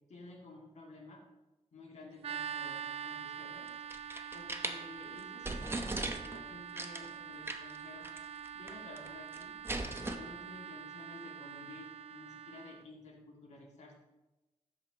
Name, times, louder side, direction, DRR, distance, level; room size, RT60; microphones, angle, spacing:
voice 1, 0.1-1.2 1.7-3.7 4.0-8.1 8.5-9.5 10.0-13.9, left 2 dB, 80° left, -2 dB, 1.9 m, -52 dB
sound 1, 2.2-12.8, right 8 dB, 60° right, 0.4 m, -45 dB
sound 2, 3.7-4.8 5.2-5.3 5.4-6.4 6.8-7.1 7.5-7.8 8.0-8.2 8.4-9.1 9.3-10.2, right 2 dB, 20° right, 0.8 m, -38 dB
13.0 x 4.9 x 2.9 m, 1.0 s
cardioid pair, 75°, 12 cm